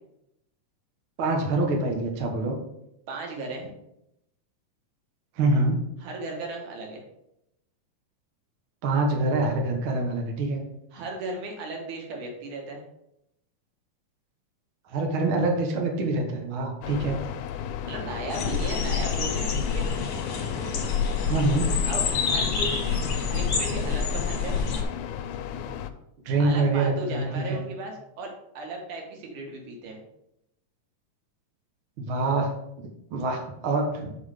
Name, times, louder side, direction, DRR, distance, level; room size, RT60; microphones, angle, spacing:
voice 1, 1.2-2.6 5.4-5.8 8.8-10.6 14.9-17.2 21.3-21.7 22.3-22.4 26.2-27.6 32.0-32.5 32.8-34.2, right 2 dB, 55° right, 2 dB, 1.7 m, -25 dB
voice 2, 3.1-3.7 6.0-7.0 10.9-12.8 16.8-17.1 17.8-19.9 21.9-22.0 22.3-23.0 23.3-24.6 26.4-28.3 28.5-30.0, right 2 dB, 85° right, 1 dB, 2.9 m, -36 dB
sound 1, 16.8-25.9, left 8 dB, 80° left, 1.9 m, -35 dB
sound 2, 18.3-24.8, left 5 dB, 55° left, 1.9 m, -27 dB
6.3 x 5.5 x 5.0 m, 0.81 s
omnidirectional pair, 3.5 m